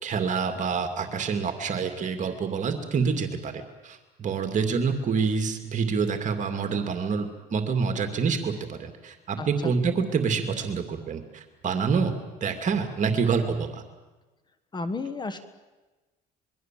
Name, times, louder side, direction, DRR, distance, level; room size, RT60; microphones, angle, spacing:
voice 1, 0.0-12.1 12.4-13.8, right 5 dB, 45° right, 6 dB, 2.5 m, -27 dB
voice 2, 9.4-9.7 14.7-15.4, left 3 dB, 25° left, 11 dB, 1.5 m, -32 dB
26.5 x 22.5 x 7.6 m, 1.2 s
cardioid pair, 110°, 17 cm